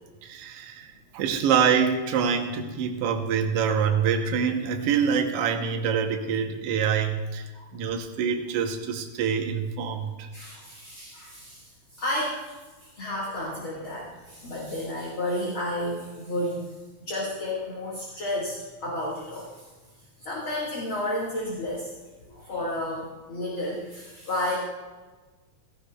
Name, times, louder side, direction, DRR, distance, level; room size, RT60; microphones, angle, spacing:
voice 1, 0.2-7.4 7.7-10.3, right 7 dB, 65° right, 3 dB, 1.7 m, -25 dB
voice 2, 10.3-12.5 12.8-16.7 17.0-19.7 20.2-21.9 22.3-24.6, left 1 dB, 45° left, -5 dB, 2.4 m, -32 dB
16.5 x 15.5 x 2.3 m, 1.3 s
omnidirectional pair, 3.4 m